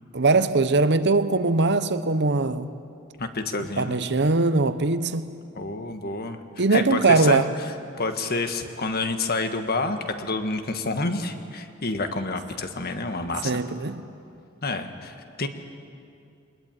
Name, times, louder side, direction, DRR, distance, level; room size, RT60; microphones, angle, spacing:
voice 1, 0.1-2.7 3.6-5.3 6.6-7.5 13.4-14.0, right 3 dB, 55° right, 0.9 m, -21 dB
voice 2, 3.2-4.0 5.5-6.4 6.7-7.5 8.0-13.6 14.6-15.5, left 3 dB, 45° left, 1.6 m, -28 dB
23.5 x 20.5 x 9.1 m
head